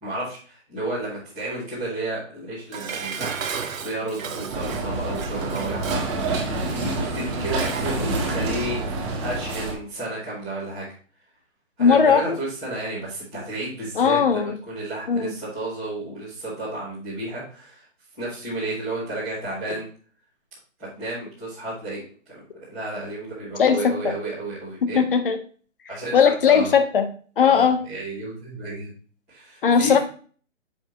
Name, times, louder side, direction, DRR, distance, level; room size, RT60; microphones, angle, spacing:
voice 1, 0.0-3.3 3.8-10.9 11.8-17.8 18.2-19.9 20.8-22.0 22.3-25.0 25.9-26.7 27.5-28.9 29.3-30.0, right 1 dB, ahead, -15 dB, 0.6 m, -32 dB
Dishes pots and pans, 2.7-8.0 8.3-8.4, right 6 dB, 85° right, 1.0 m, -34 dB
sound 1, 4.5-9.7, right 2 dB, 20° right, 1.7 m, -27 dB
voice 2, 11.8-12.4 14.0-14.6 15.1-15.3 23.6-24.1 24.9-25.4 26.1-27.0 27.4-27.8 29.6-30.0, left 6 dB, 45° left, 8 dB, 1.0 m, -18 dB
6.9 x 5.6 x 2.9 m, 0.42 s
hypercardioid pair, 165°, 39 cm